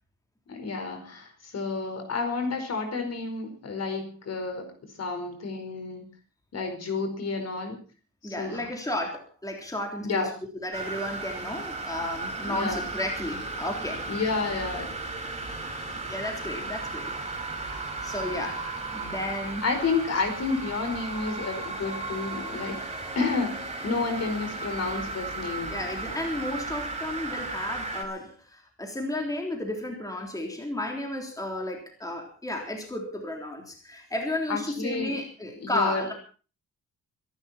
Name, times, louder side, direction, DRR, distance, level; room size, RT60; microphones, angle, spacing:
voice 1, 0.5-4.7 5.0-6.0 6.5-7.8 8.2-8.6 10.0-10.3 12.5-12.8 14.1-15.0 19.6-22.8 23.1-25.7 34.5-35.2 35.6-36.0, left 4 dB, 55° left, 6 dB, 4.8 m, -30 dB
voice 2, 8.2-10.3 10.6-14.0 16.1-17.2 17.5-19.7 25.7-36.1, left 1 dB, 10° left, 1 dB, 3.6 m, -33 dB
sound 1, 10.7-28.0, right 3 dB, 20° right, 5.0 m, -35 dB
25.0 x 11.5 x 4.3 m, 0.37 s
wide cardioid pair, 140°, 32 cm